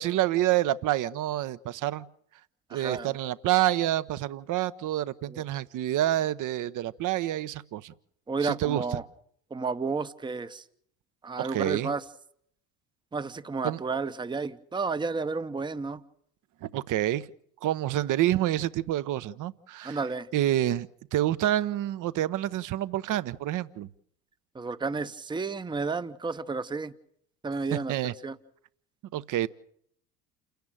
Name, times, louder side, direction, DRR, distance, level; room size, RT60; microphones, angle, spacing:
voice 1, 0.0-2.1 2.7-7.9 8.4-8.8 11.4-11.9 13.6-13.8 16.6-17.3 17.6-20.0 20.3-23.9 27.7-28.1 29.1-29.5, right 13 dB, 40° right, 16 dB, 0.9 m, -28 dB
voice 2, 2.7-3.1 5.3-5.4 8.3-9.0 9.5-10.6 11.2-12.0 13.1-16.0 19.8-20.3 24.5-26.9 27.4-28.4, right 4 dB, 10° right, 12 dB, 0.9 m, -32 dB
29.0 x 10.5 x 9.0 m, 0.71 s
figure-of-eight pair, 65°, 46 cm